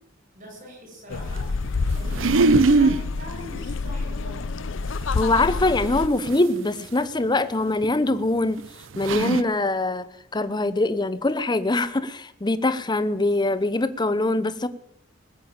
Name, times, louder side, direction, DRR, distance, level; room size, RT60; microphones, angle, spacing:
voice 1, 0.4-4.5, equal, 40° right, 0 dB, 7.2 m, -42 dB
sound 1, 1.1-6.1, left 4 dB, 70° left, 0.6 m, -28 dB
sound 2, 1.9-3.0 5.0-5.1 6.3-6.4 7.8-7.9 8.6-8.7 8.9-9.4, right 3 dB, 75° right, 0.7 m, -19 dB
voice 2, 5.1-8.6 9.0-10.1 10.3-14.7, left 2 dB, 20° left, 13 dB, 0.8 m, -23 dB
20.5 x 7.0 x 8.7 m, 0.80 s
head